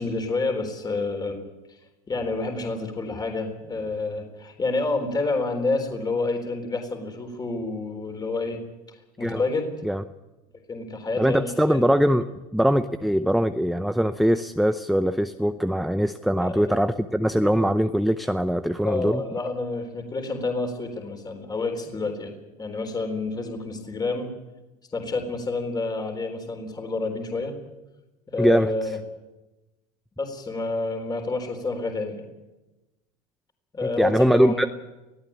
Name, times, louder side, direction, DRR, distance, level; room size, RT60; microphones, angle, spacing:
voice 1, 0.0-1.4 1.7-1.8 2.1-8.6 8.9-9.7 10.7-11.8 16.4-16.7 18.8-24.3 24.9-27.5 28.3-29.0 30.2-32.2 33.7-34.7, left 3 dB, 20° left, 4 dB, 3.9 m, -29 dB
voice 2, 11.2-12.2 12.5-19.2 28.4-28.7 34.0-34.7, equal, ahead, 9 dB, 0.7 m, -22 dB
22.0 x 14.0 x 8.7 m, 1.1 s
supercardioid pair, 105°, 19 cm